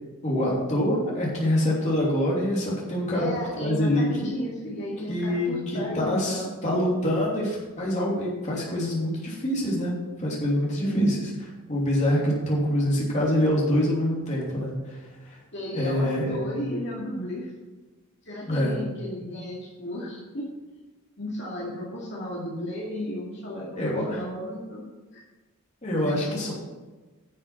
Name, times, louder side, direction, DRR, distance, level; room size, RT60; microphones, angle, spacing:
voice 1, 0.2-3.3 3.6-4.4 5.1-9.9 10.2-15.4 15.7-16.5 18.5-18.8 23.8-24.2 25.8-26.5, left 1 dB, 30° left, -4 dB, 2.9 m, -25 dB
voice 2, 3.1-6.5 10.8-11.1 15.5-17.5 18.2-20.4 21.2-24.9 25.1-25.2 25.9-26.5, equal, 55° left, -5 dB, 2.2 m, -34 dB
11.0 x 6.6 x 6.0 m, 1.2 s
head